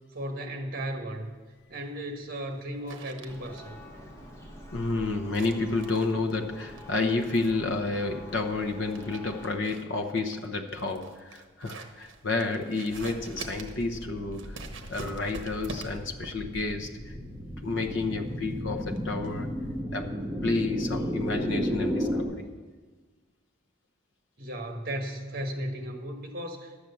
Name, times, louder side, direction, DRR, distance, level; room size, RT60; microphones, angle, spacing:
voice 1, 0.1-1.3 1.7-3.8 24.4-26.9, right 1 dB, 50° right, 4 dB, 1.5 m, -35 dB
sound 1, 1.1-19.8, right 3 dB, 65° right, 1.0 m, -47 dB
Church bell, 3.3-9.6, equal, 15° left, 1.3 m, -46 dB
voice 2, 4.7-14.6 14.9-17.2 17.6-19.5 19.9-22.4, left 3 dB, 65° left, 5 dB, 0.9 m, -30 dB
sound 2, 13.2-22.2, equal, 5° right, 1.6 m, -34 dB
11.5 x 7.7 x 6.9 m, 1.4 s
head